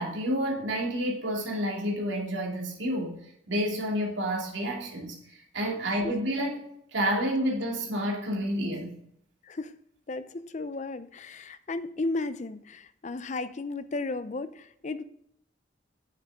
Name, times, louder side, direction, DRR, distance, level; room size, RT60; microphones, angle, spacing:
voice 1, 0.0-3.2 3.5-6.6 6.9-9.0, equal, 85° right, -1 dB, 2.7 m, -29 dB
voice 2, 10.1-15.0, left 3 dB, 40° left, 13 dB, 0.6 m, -34 dB
9.3 x 7.2 x 3.6 m, 0.74 s
head